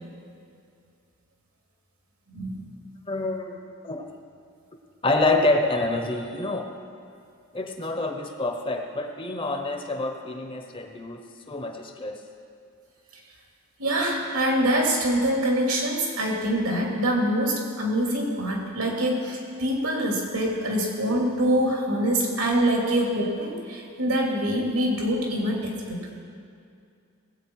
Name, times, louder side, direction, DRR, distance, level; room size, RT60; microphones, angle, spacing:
voice 1, 3.1-3.6 3.8-4.0 5.0-6.7 7.5-12.2, left 2 dB, 25° left, 4 dB, 0.8 m, -27 dB
voice 2, 13.8-26.1, right 1 dB, 80° right, -2 dB, 2.9 m, -25 dB
19.5 x 8.4 x 4.7 m, 2.4 s
head